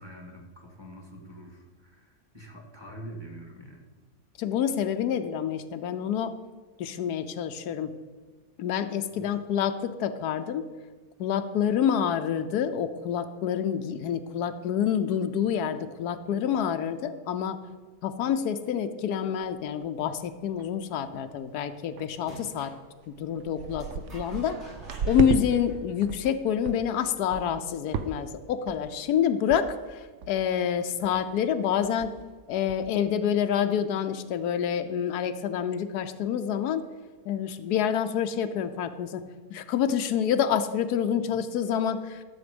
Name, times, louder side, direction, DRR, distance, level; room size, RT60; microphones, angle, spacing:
voice 1, 0.0-3.9 9.1-9.3 41.3-41.4, right 1 dB, 15° right, 1 dB, 1.9 m, -45 dB
voice 2, 4.4-6.3 6.8-7.9 8.6-10.6 11.2-17.6 18.0-22.7 23.1-23.9 24.1-24.6 25.1-30.0 30.3-32.1 32.5-36.9 37.3-39.2 39.5-42.2, left 8 dB, 85° left, 9 dB, 1.2 m, -27 dB
sound 1, 19.4-19.5 20.0-20.1 20.4-20.8 21.1-21.4 22.0-22.1 22.7-22.8 23.1-25.4 25.8-26.3 26.7-26.9 27.3-27.6 27.9-28.4 28.7-29.0 29.5-29.6 29.9-30.0 30.2-30.6 31.0-31.2 31.5-31.6 31.8-32.3 32.7-32.8, right 7 dB, 60° right, 0.8 m, -34 dB
sound 2, 22.2-22.8 23.8-26.5, equal, 45° right, 4.1 m, -48 dB
12.5 x 7.2 x 5.2 m, 1.4 s
omnidirectional pair, 1.6 m